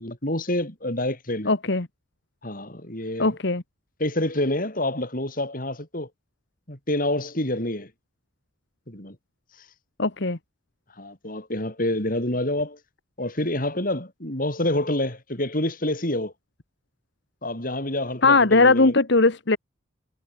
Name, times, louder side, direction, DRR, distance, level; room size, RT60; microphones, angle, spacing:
voice 1, 0.0-1.5 2.4-3.4 4.0-6.1 6.7-7.9 8.9-9.1 11.0-12.8 13.2-16.3 17.4-18.9, left 1 dB, 45° left, 6.7 m, -27 dB
voice 2, 1.5-1.9 3.2-3.6 10.0-10.4 18.2-19.6, left 3 dB, 65° left, 1.5 m, -19 dB
head